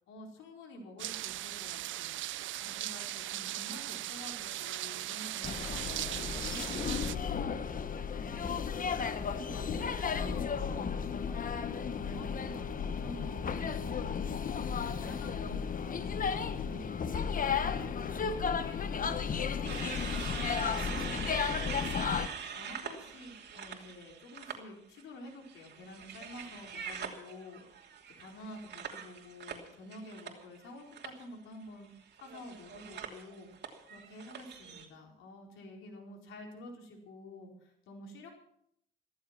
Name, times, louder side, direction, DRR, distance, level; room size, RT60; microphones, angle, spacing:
voice 1, 0.1-7.8 8.1-27.9 28.2-31.9 32.2-38.3, left 1 dB, 85° left, 1 dB, 4.5 m, -50 dB
sound 1, 1.0-7.2, right 15 dB, 75° right, 0.5 m, -38 dB
sound 2, 5.4-22.3, left 6 dB, 45° left, 1.2 m, -34 dB
sound 3, 19.6-24.6 25.0-30.7 30.9-31.2 32.1-34.9, right 7 dB, 60° right, 2.9 m, -43 dB
14.5 x 14.5 x 5.9 m, 0.73 s
cardioid pair, 90°, 20 cm